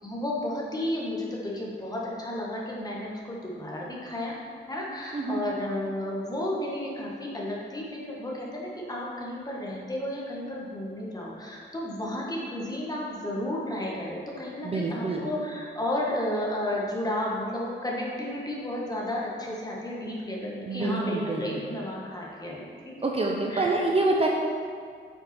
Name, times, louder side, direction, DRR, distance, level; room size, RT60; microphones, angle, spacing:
voice 1, 0.0-4.4 4.7-23.0 23.5-23.9, left 1 dB, 20° left, -4 dB, 1.4 m, -32 dB
voice 2, 5.1-5.4 14.6-15.2 20.6-21.7 23.0-24.3, right 2 dB, 30° right, 0 dB, 0.7 m, -26 dB
8.6 x 5.7 x 4.3 m, 2.1 s
wide cardioid pair, 150°, 20 cm